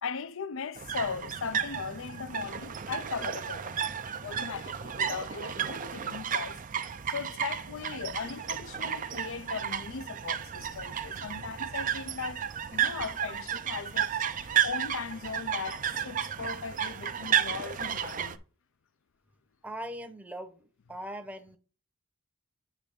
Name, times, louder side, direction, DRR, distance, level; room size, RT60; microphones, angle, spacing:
voice 1, 0.0-3.9 4.2-18.4, left 6 dB, 60° left, 0.5 m, -38 dB
sound 1, 0.7-18.4, right 8 dB, 40° right, 0.5 m, -33 dB
voice 2, 19.6-21.6, right 1 dB, 5° right, 0.8 m, -40 dB
8.1 x 3.4 x 5.2 m
head